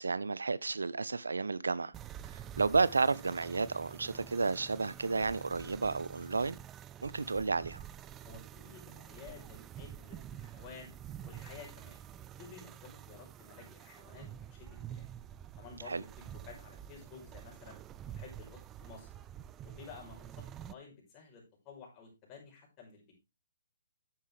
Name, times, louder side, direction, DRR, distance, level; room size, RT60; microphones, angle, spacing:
voice 1, 0.0-1.9 2.3-6.6 7.0-7.8 15.9-16.0, right 4 dB, 85° right, 0.6 m, -32 dB
sound 1, 1.9-20.8, right 10 dB, 15° right, 0.4 m, -48 dB
voice 2, 8.2-10.9 11.2-12.0 12.4-15.1 15.6-17.8 18.1-19.1 19.6-23.1, left 5 dB, 25° left, 5.3 m, -52 dB
9.9 x 7.5 x 3.3 m
hypercardioid pair, 145°, 0 cm